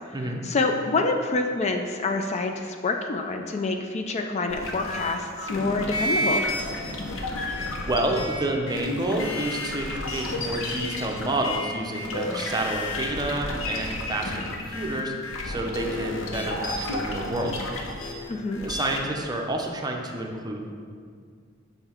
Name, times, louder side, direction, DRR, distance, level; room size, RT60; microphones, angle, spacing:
voice 1, 0.1-6.5 18.3-18.6, left 3 dB, 35° left, 4 dB, 0.4 m, -27 dB
sound 1, 4.5-19.0, left 1 dB, 80° left, 0.8 m, -31 dB
voice 2, 7.9-15.1 15.4-17.5 18.6-20.6, right 1 dB, 20° right, 1 dB, 0.6 m, -29 dB
5.9 x 5.5 x 4.4 m, 2.1 s
head